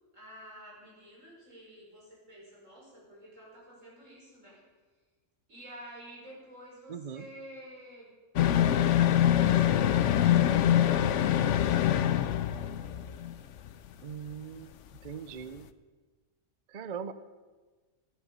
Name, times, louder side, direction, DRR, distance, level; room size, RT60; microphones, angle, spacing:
voice 1, 0.1-4.6 5.5-8.1 8.4-12.2, equal, 85° right, -4 dB, 5.7 m, -50 dB
voice 2, 6.9-7.3 14.0-14.7 15.0-15.7 16.7-17.1, right 7 dB, 45° right, 12 dB, 0.6 m, -40 dB
sound 1, 8.4-13.3 13.7-13.8, left 11 dB, 75° left, 0.9 m, -24 dB
13.0 x 11.5 x 6.8 m, 1.4 s
omnidirectional pair, 1.3 m